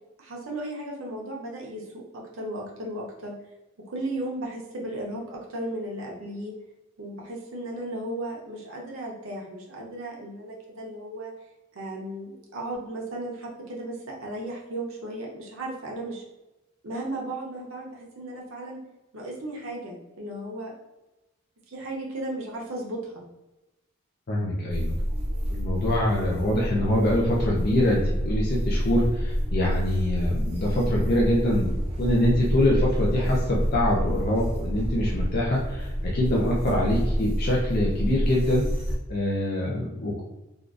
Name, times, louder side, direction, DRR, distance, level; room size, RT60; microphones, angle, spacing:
voice 1, 0.2-3.3 3.9-6.5 7.0-11.3 11.7-16.2 16.8-18.8 19.1-20.7 21.7-23.2, right 1 dB, 75° right, -2 dB, 0.7 m, -35 dB
voice 2, 24.3-25.0 25.5-31.7 32.0-38.6 39.1-40.2, left 1 dB, 45° left, -3 dB, 0.4 m, -24 dB
sound 1, 24.7-39.0, equal, 25° right, 0.6 m, -28 dB
3.5 x 2.4 x 2.4 m, 1.0 s
head